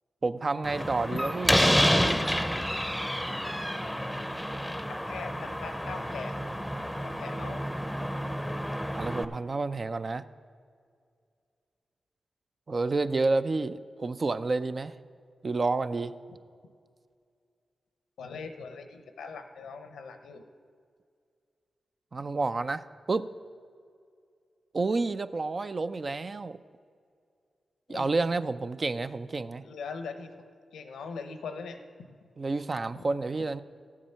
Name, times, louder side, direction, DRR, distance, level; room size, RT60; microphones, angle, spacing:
voice 1, 0.2-1.5 8.9-10.2 12.7-14.9 15.4-16.1 22.1-23.3 24.7-26.6 27.9-29.6 32.4-33.6, right 3 dB, 50° right, 12 dB, 0.4 m, -29 dB
Slam, 0.6-9.3, equal, ahead, 0.7 m, -29 dB
voice 2, 5.0-6.4 7.0-7.6 18.2-20.4 27.9-28.1 29.6-30.3 30.7-31.8, left 5 dB, 90° left, 8 dB, 0.7 m, -40 dB
14.0 x 7.4 x 5.6 m, 2.2 s
supercardioid pair, 40°, 0 cm